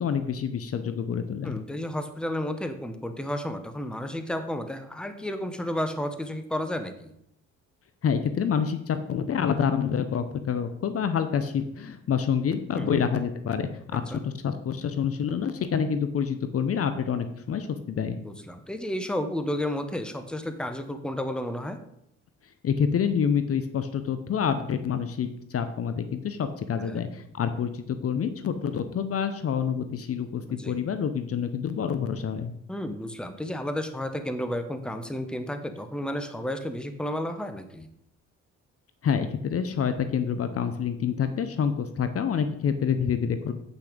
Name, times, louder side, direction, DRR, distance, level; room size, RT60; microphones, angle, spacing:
voice 1, 0.0-1.6 8.0-18.2 22.6-32.5 39.0-43.5, left 7 dB, 50° left, 10 dB, 0.8 m, -27 dB
voice 2, 1.4-7.1 12.7-13.0 13.9-14.2 18.1-21.8 26.8-27.0 30.5-30.8 32.7-37.9, left 1 dB, 5° left, 8 dB, 1.0 m, -32 dB
8.1 x 6.0 x 5.2 m, 0.76 s
cardioid pair, 90°, 30 cm